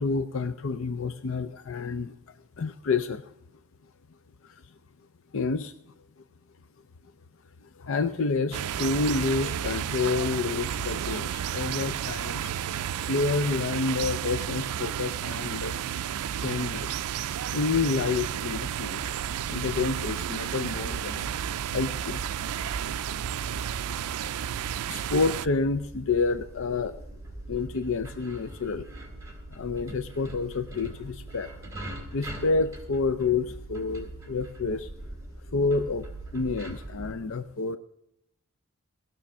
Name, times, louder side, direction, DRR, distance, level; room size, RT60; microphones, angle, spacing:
voice 1, 0.0-2.1 2.6-3.3 4.4-4.7 5.3-5.7 7.6-12.5 13.1-15.8 16.4-17.0 17.5-19.1 19.5-21.3 21.7-22.2 23.5-23.9 24.9-27.0 27.5-28.9 29.5-31.5 32.1-34.9 35.4-36.1 36.3-37.8, left 4 dB, 60° left, 11 dB, 0.5 m, -29 dB
sound 1, 8.5-25.5, right 10 dB, 90° right, 0.4 m, -32 dB
sound 2, 18.8-37.1, right 1 dB, 15° right, 2.7 m, -42 dB
18.0 x 6.5 x 7.1 m, 0.78 s
head